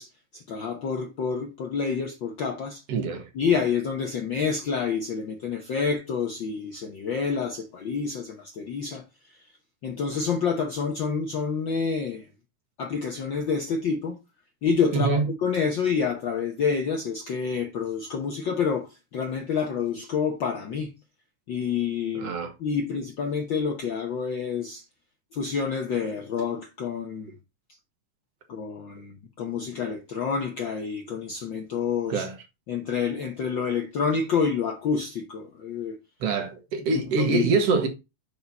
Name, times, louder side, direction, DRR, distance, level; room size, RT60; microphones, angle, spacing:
voice 1, 0.0-2.8 3.3-9.0 9.8-12.2 12.8-14.2 14.6-20.9 21.5-22.3 22.6-24.8 25.3-27.3 28.5-32.3 32.7-36.0 36.9-37.5, left 6 dB, 65° left, 1.2 m, -28 dB
voice 2, 2.9-3.3 14.9-15.2 22.1-22.5 32.1-32.3 36.2-37.9, right 4 dB, 65° right, 2.0 m, -25 dB
6.6 x 5.7 x 4.1 m
omnidirectional pair, 3.3 m